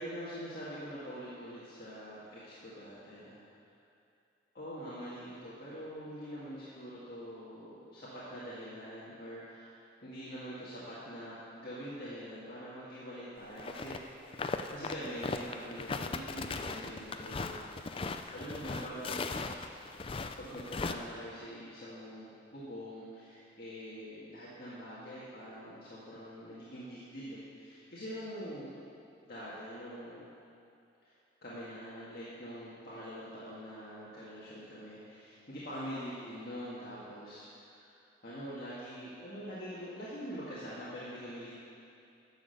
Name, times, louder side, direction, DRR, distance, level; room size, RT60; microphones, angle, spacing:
voice 1, 0.0-3.4 4.5-9.7 10.0-14.4 14.7-17.6 18.3-19.3 20.4-28.7 29.2-30.2 31.0-31.1 31.4-37.9 38.2-41.5, equal, 55° left, -9 dB, 2.0 m, -44 dB
sound 1, 13.6-14.0 14.2-20.9, left 3 dB, 30° left, 0.4 m, -38 dB
10.5 x 7.1 x 6.6 m, 2.5 s
head